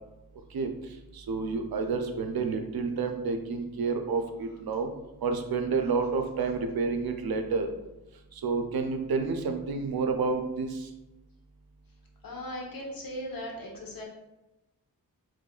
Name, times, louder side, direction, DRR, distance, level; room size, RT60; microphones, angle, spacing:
voice 1, 1.1-4.9 5.2-7.7 8.3-10.9, right 4 dB, 80° right, 6 dB, 0.6 m, -29 dB
voice 2, 12.2-14.0, left 1 dB, 70° left, 0 dB, 1.1 m, -38 dB
5.1 x 3.6 x 2.4 m, 0.98 s
wide cardioid pair, 90°, 36 cm